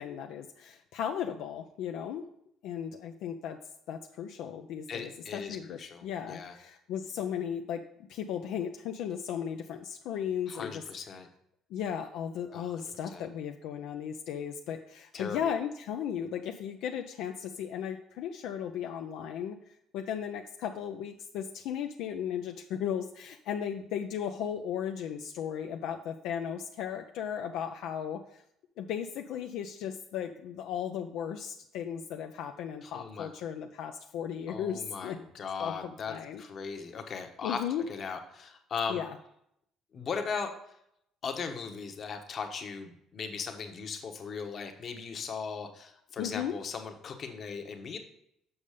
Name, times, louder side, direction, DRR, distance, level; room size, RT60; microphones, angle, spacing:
voice 1, 0.0-2.3 2.6-3.6 3.9-7.8 8.1-10.8 11.7-19.6 19.9-28.4 28.8-35.2 35.6-36.4 37.4-37.9 38.9-39.2 46.2-46.6, left 8 dB, 80° left, 4 dB, 0.5 m, -36 dB
voice 2, 4.9-6.6 10.5-11.3 12.5-13.3 15.1-15.5 32.8-33.3 34.5-37.6 37.9-39.0 39.9-40.5 41.2-48.0, left 5 dB, 45° left, 5 dB, 1.1 m, -38 dB
7.1 x 5.4 x 5.0 m, 0.75 s
cardioid pair, 100°, 0 cm